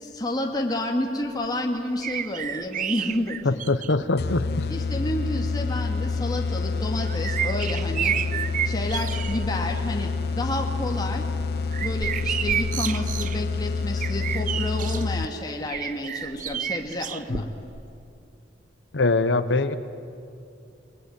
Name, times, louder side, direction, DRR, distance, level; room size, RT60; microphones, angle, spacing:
voice 1, 0.0-3.6 4.7-8.2 8.7-11.3 11.8-17.5, left 1 dB, 20° left, 1 dB, 2.2 m, -30 dB
sound 1, 2.0-4.1 4.9-5.0 6.6-9.5 9.9-10.3 10.7-15.0 15.7-17.8 18.1-18.2, right 9 dB, 45° right, 0.6 m, -31 dB
voice 2, 3.4-4.7 17.3-17.4 18.9-19.8, left 3 dB, 85° left, 10 dB, 0.9 m, -23 dB
sound 2, 4.2-15.6, left 4 dB, 60° left, 0.6 m, -28 dB
28.0 x 21.0 x 9.6 m, 2.5 s
head